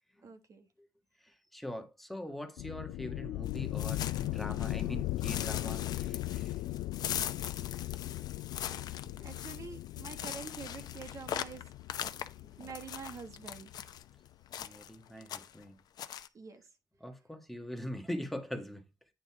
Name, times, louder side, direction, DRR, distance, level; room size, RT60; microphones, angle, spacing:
voice 1, 0.2-0.7 9.2-11.6 12.6-13.7 16.3-16.6, right 5 dB, 45° right, 1.3 m, -46 dB
voice 2, 1.2-6.6 9.0-9.1 12.4-12.7 14.6-15.8 17.0-18.8, equal, ahead, 1.5 m, -43 dB
sound 1, 2.6-14.0, left 16 dB, 85° left, 0.4 m, -38 dB
sound 2, 3.5-4.9 5.2-14.0 14.5-15.0 15.2-15.6 16.0-16.3, left 10 dB, 65° left, 0.8 m, -41 dB
9.2 x 3.9 x 4.8 m
cardioid pair, 90°, 7 cm